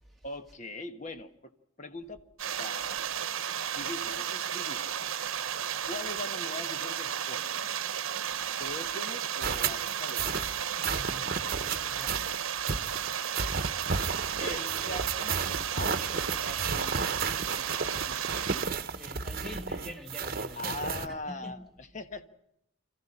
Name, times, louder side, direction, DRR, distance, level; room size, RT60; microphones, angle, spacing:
voice 1, 0.2-1.5 1.8-2.2 2.6-3.0 3.7-4.9 5.8-7.6 8.6-10.3 14.4-17.0 17.5-17.7 18.1-18.3 20.5-22.3, left 2 dB, 35° left, 1.3 m, -41 dB
sound 1, 2.4-18.7, right 9 dB, 80° right, 0.9 m, -33 dB
sound 2, 9.4-21.1, right 5 dB, 45° right, 1.1 m, -33 dB
voice 2, 10.8-12.3 13.0-13.2 18.9-21.6, left 1 dB, ahead, 1.9 m, -45 dB
26.0 x 15.0 x 9.9 m
head